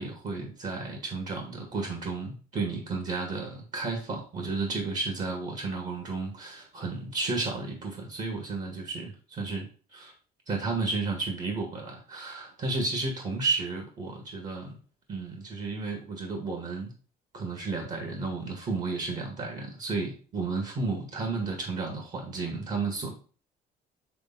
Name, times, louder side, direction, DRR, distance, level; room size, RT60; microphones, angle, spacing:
voice 1, 0.0-10.1 10.5-14.8 15.1-16.9 17.3-23.1, right 3 dB, 50° right, 2 dB, 1.9 m, -32 dB
6.8 x 3.4 x 4.1 m, 0.38 s
cardioid pair, 110°, 17 cm